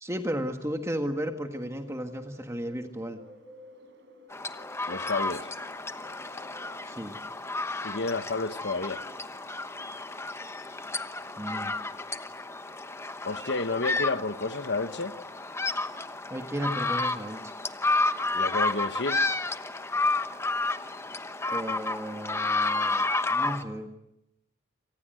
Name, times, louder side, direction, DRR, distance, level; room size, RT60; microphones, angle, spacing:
voice 1, 0.0-3.2 6.9-7.2 11.4-11.7 16.3-17.5 21.5-23.9, equal, 15° right, 1.7 m, -34 dB
Bird, 1.6-9.9, left 1 dB, 60° right, 6.4 m, -54 dB
sound 1, 4.3-23.6, left 3 dB, 15° left, 1.1 m, -31 dB
voice 2, 4.9-5.5 7.8-9.0 13.2-15.1 18.3-19.2, left 3 dB, 55° left, 1.4 m, -30 dB
28.0 x 25.0 x 7.9 m
head